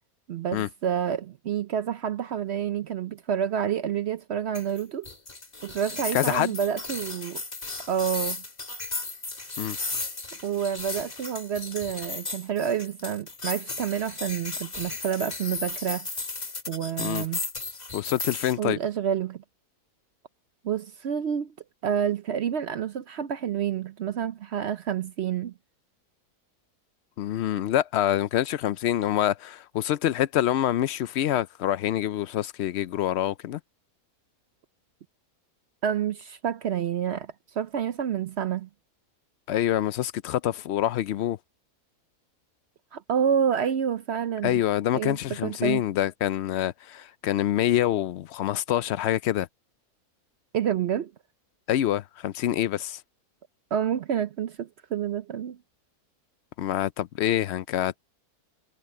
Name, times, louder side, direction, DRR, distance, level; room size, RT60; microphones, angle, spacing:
voice 1, 0.3-5.1 5.6-7.4 7.9-8.4 10.4-16.1 16.7-17.4 18.6-19.4 20.6-21.5 21.8-25.5 35.8-37.3 37.5-38.7 42.9-44.6 44.9-45.8 50.5-51.1 53.7-55.6, right 8 dB, 60° right, 0.7 m, -28 dB
sound 1, 4.5-18.6, left 3 dB, 30° left, 1.8 m, -35 dB
voice 2, 6.1-6.5 9.6-9.8 17.0-17.3 17.9-18.8 27.2-33.6 39.5-41.4 44.4-49.5 51.7-53.0 56.6-58.0, left 12 dB, 70° left, 0.6 m, -26 dB
omnidirectional pair, 1.6 m